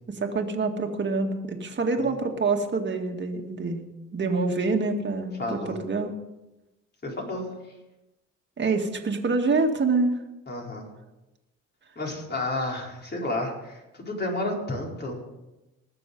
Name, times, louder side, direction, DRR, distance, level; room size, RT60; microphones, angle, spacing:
voice 1, 0.1-3.8 4.1-6.1 8.6-10.2, right 3 dB, 35° right, 4 dB, 2.0 m, -26 dB
voice 2, 5.4-5.8 7.0-7.5 10.5-10.8 12.0-15.2, left 2 dB, 35° left, -2 dB, 4.5 m, -31 dB
20.0 x 6.9 x 5.4 m, 0.98 s
cardioid pair, 90°, 30 cm